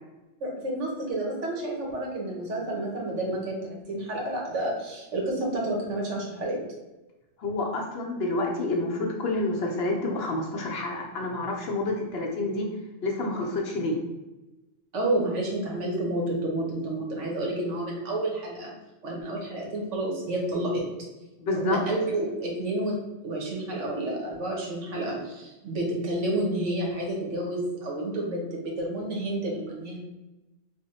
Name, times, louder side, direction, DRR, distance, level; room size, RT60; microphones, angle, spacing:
voice 1, 0.4-6.6 14.9-18.7 19.0-20.8 21.5-22.9 23.2-30.0, right 1 dB, 75° right, -2 dB, 1.3 m, -30 dB
voice 2, 7.4-12.7 13.0-14.0 21.4-21.8, left 2 dB, 65° left, 0 dB, 0.8 m, -28 dB
3.4 x 2.1 x 4.0 m, 1.0 s
omnidirectional pair, 1.3 m